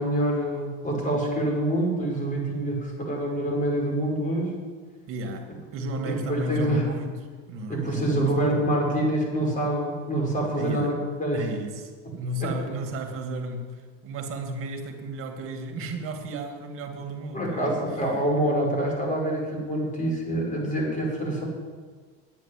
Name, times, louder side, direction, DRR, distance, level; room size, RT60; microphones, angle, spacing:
voice 1, 0.0-4.5 6.1-6.9 7.7-11.5 12.4-12.5 17.3-21.4, right 1 dB, 25° left, -1 dB, 5.4 m, -26 dB
voice 2, 5.1-7.2 7.5-8.4 10.6-10.9 11.3-17.8, right 1 dB, 45° right, 5 dB, 2.4 m, -33 dB
9.9 x 9.3 x 10.0 m, 1.5 s
supercardioid pair, 115°, 30 cm